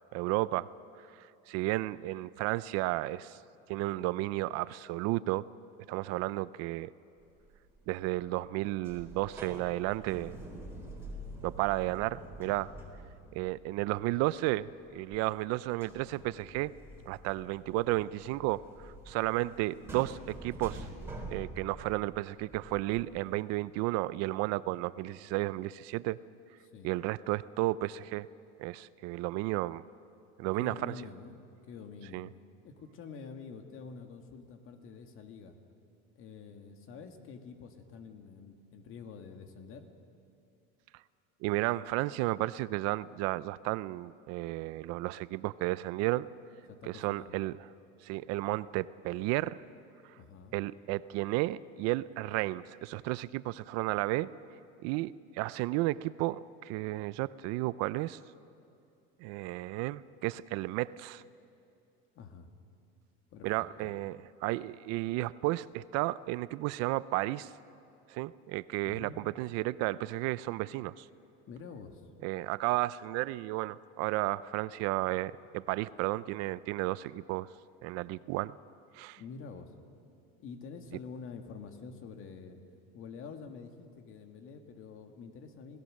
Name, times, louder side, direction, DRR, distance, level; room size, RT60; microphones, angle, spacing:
voice 1, 0.1-0.7 1.2-3.4 3.7-5.4 5.9-6.9 7.9-10.4 11.4-12.7 13.3-14.7 14.9-16.7 17.1-20.9 21.3-26.2 26.8-28.3 28.6-29.8 30.4-30.9 32.1-32.3 41.4-46.3 46.8-47.5 48.0-49.6 50.5-54.3 54.8-58.2 59.2-61.2 63.4-67.5 68.1-71.1 72.2-77.5 77.8-78.6 79.0-79.2, right 18 dB, 60° right, 18 dB, 0.5 m, -33 dB
sound 1, 7.4-7.8 8.1-8.6 8.8-15.4 15.7-23.4, right 1 dB, 10° right, 3.8 m, -47 dB
voice 2, 30.6-32.2 32.6-35.6 36.2-39.9 46.7-47.3 50.2-50.6 62.2-62.5 63.3-63.9 68.8-69.2 71.5-72.1 79.2-79.7 80.4-82.6 82.9-85.8, left 5 dB, 45° left, 5 dB, 2.1 m, -47 dB
27.0 x 17.5 x 6.5 m, 2.6 s
supercardioid pair, 130°, 29 cm